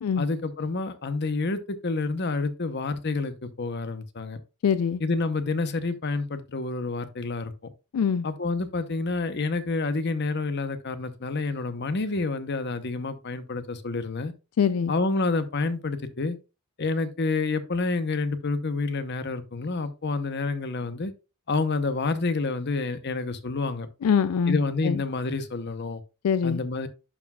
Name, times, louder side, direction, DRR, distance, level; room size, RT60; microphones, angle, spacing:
voice 1, 0.2-4.4 5.0-7.5 8.2-14.3 14.9-16.4 16.8-21.1 21.5-23.9 24.5-26.0 26.4-26.9, left 3 dB, 50° left, 0.8 m, -28 dB
voice 2, 4.6-5.0 7.9-8.2 14.6-14.9 24.0-24.6 24.8-25.0 26.2-26.6, left 6 dB, 85° left, 0.4 m, -23 dB
11.0 x 4.7 x 2.3 m
head